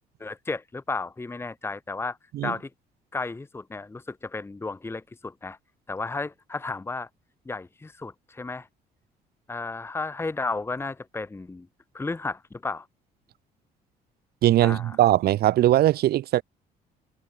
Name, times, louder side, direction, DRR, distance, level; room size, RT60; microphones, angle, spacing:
voice 1, 0.2-2.2 2.4-2.7 3.1-5.6 5.9-7.1 7.5-8.7 9.5-11.7 11.9-12.9 14.6-15.0, left 3 dB, 15° left, 1.4 m, -33 dB
voice 2, 14.4-16.4, right 14 dB, 70° right, 2.1 m, -20 dB
cardioid pair, 110°, 17 cm